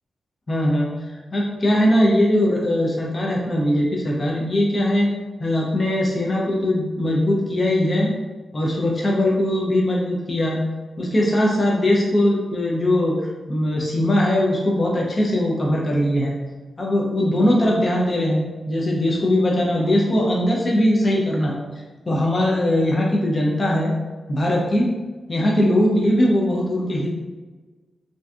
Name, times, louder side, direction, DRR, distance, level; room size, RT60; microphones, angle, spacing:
voice 1, 0.5-5.1 5.4-8.1 8.5-10.6 11.0-16.4 16.8-21.6 22.1-23.9 24.3-24.9 25.3-27.1, left 1 dB, 30° left, -3 dB, 0.4 m, -20 dB
2.5 x 2.2 x 3.4 m, 1.3 s
wide cardioid pair, 150°, 0 cm